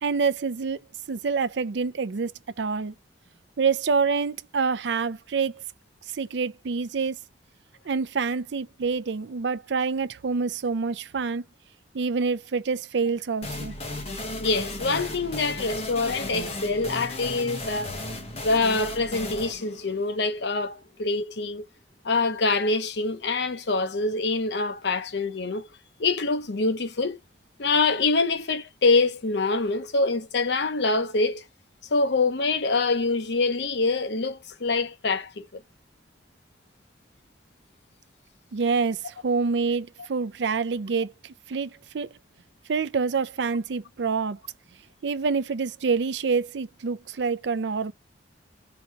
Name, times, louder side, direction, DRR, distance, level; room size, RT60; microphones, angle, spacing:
voice 1, 0.0-0.8 1.1-2.3 2.6-2.9 3.6-5.6 6.1-7.2 7.9-11.4 11.9-13.7 38.5-42.1 42.7-44.4 45.0-47.9, right 5 dB, 70° right, 0.5 m, -27 dB
sound 1, 13.4-20.9, left 1 dB, 35° left, 1.2 m, -35 dB
voice 2, 14.4-17.9 18.4-21.7 22.0-25.7 26.0-27.2 27.6-31.4 31.9-35.6, left 3 dB, 65° left, 0.7 m, -25 dB
3.9 x 2.9 x 4.4 m
head